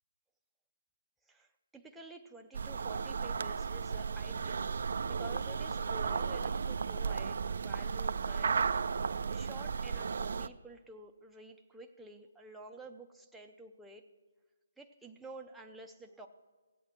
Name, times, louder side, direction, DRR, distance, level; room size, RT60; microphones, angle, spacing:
voice 1, 1.3-4.7 5.1-8.6 9.3-14.0 14.8-16.3, right 2 dB, 5° right, 1 dB, 0.6 m, -50 dB
sound 1, 2.5-10.5, right 5 dB, 60° right, 0.4 m, -34 dB
16.5 x 8.4 x 6.0 m, 1.3 s
hypercardioid pair, 160°, 0 cm